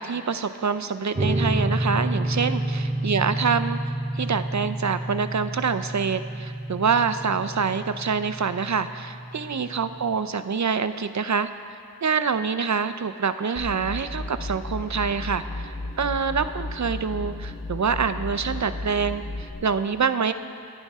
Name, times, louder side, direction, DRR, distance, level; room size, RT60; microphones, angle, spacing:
voice 1, 0.0-3.8 4.2-11.5 12.0-20.3, right 5 dB, 50° right, 11 dB, 0.6 m, -26 dB
sound 1, 1.1-10.1, right 1 dB, 20° right, 1.1 m, -29 dB
sound 2, 13.6-19.5, left 2 dB, 35° left, 2.7 m, -34 dB
25.5 x 9.7 x 3.6 m, 2.4 s
wide cardioid pair, 55°, 36 cm